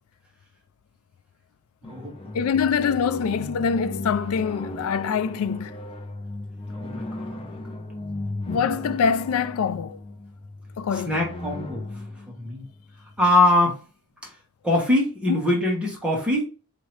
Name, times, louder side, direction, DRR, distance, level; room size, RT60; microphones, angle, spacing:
sound 1, 1.8-13.5, left 2 dB, 25° left, 0.6 m, -36 dB
voice 1, 1.8-2.1 6.7-7.6 11.0-12.6 13.2-13.8 14.2-14.3 14.6-16.4, left 1 dB, 5° right, 1.2 m, -23 dB
voice 2, 2.3-5.7 8.5-10.0 10.8-11.3 15.3-15.4, left 6 dB, 70° left, 0.3 m, -24 dB
4.5 x 2.8 x 3.1 m
head